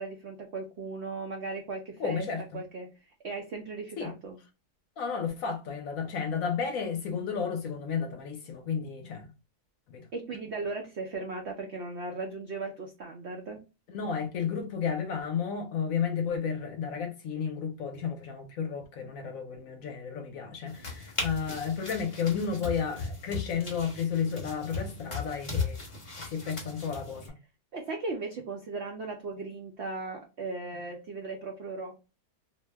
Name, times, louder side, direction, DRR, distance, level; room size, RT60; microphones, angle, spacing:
voice 1, 0.0-2.3 2.5-2.9 3.2-4.4 10.1-13.6 27.7-32.1, right 3 dB, 85° right, 0.5 m, -37 dB
voice 2, 2.0-2.6 4.0-4.1 5.0-9.3 9.9-10.0 13.9-25.8 26.3-27.2, left 6 dB, 65° left, 0.9 m, -32 dB
sound 1, 20.7-27.3, left 4 dB, 30° left, 0.6 m, -37 dB
2.7 x 2.0 x 3.3 m
omnidirectional pair, 1.8 m